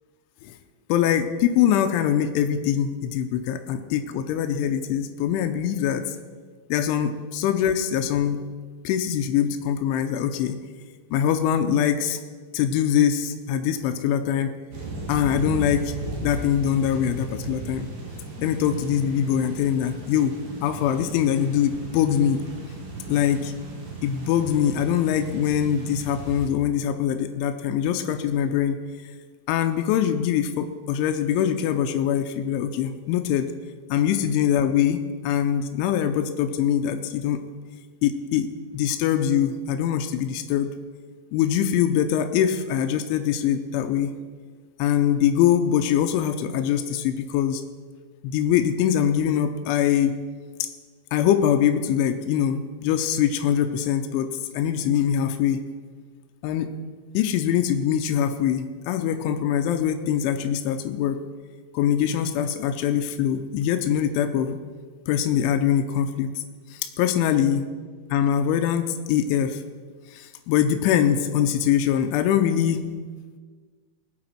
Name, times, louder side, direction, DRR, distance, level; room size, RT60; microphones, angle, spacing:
voice 1, 0.9-6.2 6.7-8.5 8.8-10.6 11.1-12.2 12.5-14.5 15.1-16.0 16.2-17.9 18.4-20.3 20.6-22.4 23.1-23.5 24.0-28.8 29.5-33.5 33.9-37.4 38.0-40.7 41.3-44.1 44.8-47.6 48.2-50.2 50.6-50.7 51.1-55.6 56.4-56.7 57.1-61.2 61.7-64.6 65.1-66.4 66.7-67.6 68.1-69.6 70.1-72.9, left 9 dB, 90° left, 7 dB, 3.1 m, -23 dB
sound 1, 14.7-26.5, right 3 dB, 55° right, 3.5 m, -36 dB
20.0 x 8.7 x 4.5 m, 1.5 s
omnidirectional pair, 5.4 m